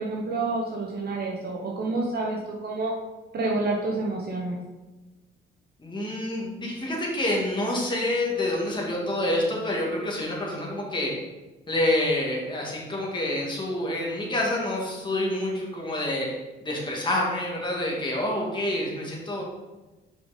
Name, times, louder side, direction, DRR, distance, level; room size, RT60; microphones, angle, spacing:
voice 1, 0.0-2.9 3.3-4.6, right 3 dB, 55° right, -2 dB, 1.1 m, -28 dB
voice 2, 5.8-11.2 11.7-16.3 16.6-19.4, left 1 dB, 25° left, -3 dB, 2.0 m, -27 dB
5.7 x 5.2 x 4.1 m, 1.1 s
cardioid pair, 90°, 20 cm